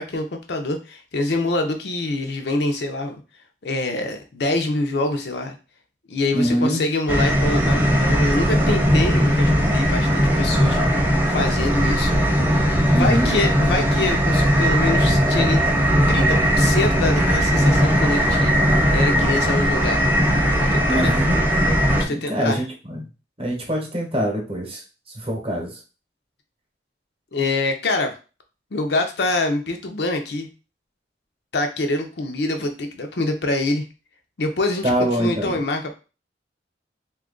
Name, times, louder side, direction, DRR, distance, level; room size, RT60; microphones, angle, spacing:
voice 1, 0.0-3.2 3.6-5.6 6.1-10.8 11.3-12.1 12.9-15.8 16.1-18.6 18.9-20.1 20.6-21.1 21.9-22.6 27.3-28.1 28.7-30.5 31.5-33.8 34.4-36.0, left 2 dB, 65° left, 5 dB, 0.6 m, -25 dB
voice 2, 6.3-6.8 12.9-13.4 20.9-21.4 22.1-23.1 23.4-24.8 25.1-25.8 34.8-35.6, equal, 30° right, 0 dB, 0.9 m, -24 dB
sound 1, 7.1-22.0, equal, 10° right, 0.4 m, -18 dB
2.8 x 2.4 x 3.7 m, 0.32 s
head